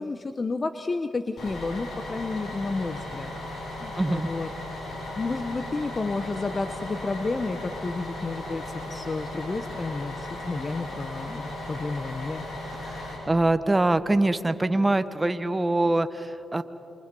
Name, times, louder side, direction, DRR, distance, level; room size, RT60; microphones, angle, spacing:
voice 1, 0.0-3.3 3.8-4.5 5.1-12.4, left 3 dB, 35° left, 8 dB, 0.9 m, -31 dB
Bus, 1.4-13.2, left 1 dB, 75° left, 7.7 m, -36 dB
voice 2, 4.0-4.3 12.8-16.6, right 2 dB, 20° right, 11 dB, 1.0 m, -24 dB
27.0 x 24.5 x 5.4 m, 2.7 s
cardioid pair, 70°, 0 cm